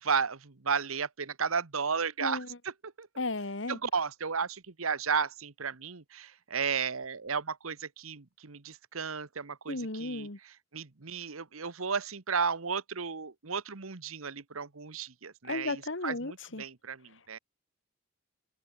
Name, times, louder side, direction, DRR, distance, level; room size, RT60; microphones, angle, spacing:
voice 1, 0.0-3.1 3.7-17.4, right 6 dB, 90° right, 1.3 m, -34 dB
voice 2, 3.2-3.8 9.7-10.4 15.5-16.6, left 2 dB, 60° left, 1.9 m, -34 dB
open air
head